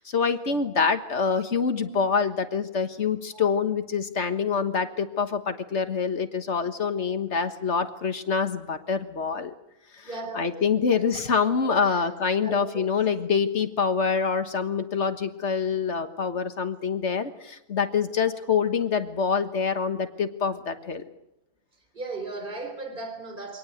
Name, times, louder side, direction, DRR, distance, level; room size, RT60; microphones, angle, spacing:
voice 1, 0.0-9.5 10.0-10.1 10.3-21.0, left 6 dB, 45° left, 9 dB, 1.6 m, -26 dB
voice 2, 10.0-11.2 11.8-12.0 12.4-12.8 21.9-23.6, right 3 dB, 30° right, 5 dB, 3.7 m, -37 dB
24.0 x 18.5 x 8.0 m, 0.85 s
omnidirectional pair, 1.8 m